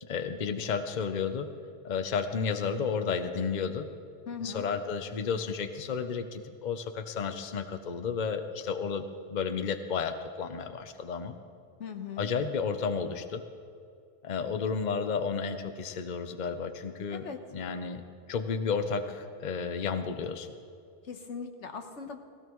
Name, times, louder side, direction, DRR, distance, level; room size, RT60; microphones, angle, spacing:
voice 1, 0.0-1.5 1.8-3.9 4.4-9.0 9.3-11.3 12.2-13.4 14.2-17.2 17.5-18.0 18.3-20.5, left 5 dB, 45° left, 8 dB, 0.8 m, -32 dB
voice 2, 4.3-4.6 11.8-12.3 17.1-18.0 21.0-22.2, left 6 dB, 90° left, 6 dB, 1.4 m, -40 dB
17.5 x 16.0 x 3.1 m, 2.3 s
omnidirectional pair, 1.2 m